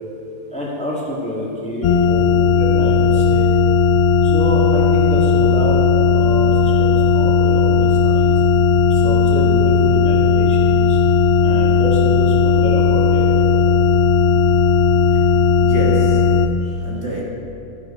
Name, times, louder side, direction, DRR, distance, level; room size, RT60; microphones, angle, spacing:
voice 1, 0.5-3.5 4.2-5.8 6.1-8.3 8.9-11.0 11.4-13.4, left 1 dB, 5° left, -5 dB, 1.8 m, -27 dB
sound 1, 1.8-16.5, left 5 dB, 75° left, 0.5 m, -15 dB
voice 2, 15.6-17.2, equal, 45° right, -4 dB, 1.9 m, -28 dB
13.0 x 10.5 x 4.3 m, 2.9 s
omnidirectional pair, 1.7 m